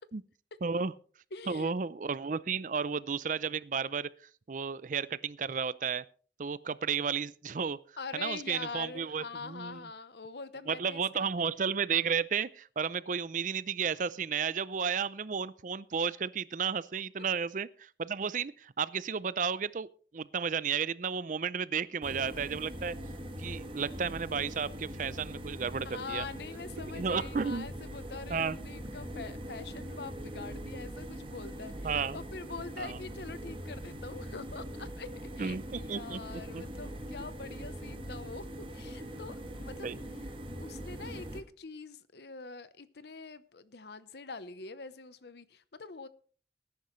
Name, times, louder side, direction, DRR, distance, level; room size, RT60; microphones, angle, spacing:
voice 1, 0.6-0.9 1.5-4.1 4.5-6.0 6.4-7.8 8.1-9.8 10.7-19.9 20.1-23.0 23.4-26.2 26.8-27.7 28.3-28.6 31.8-32.2 32.8-33.0 35.4-36.6 39.8-40.0, right 6 dB, 45° right, 18 dB, 0.5 m, -33 dB
voice 2, 1.3-1.7 8.0-11.3 25.8-35.1 35.3-38.5 38.7-39.9 40.6-46.1, left 4 dB, 65° left, 15 dB, 0.9 m, -44 dB
Gas oven, 22.0-41.4, equal, 30° right, 1.4 m, -42 dB
19.5 x 10.5 x 3.2 m, 0.42 s
head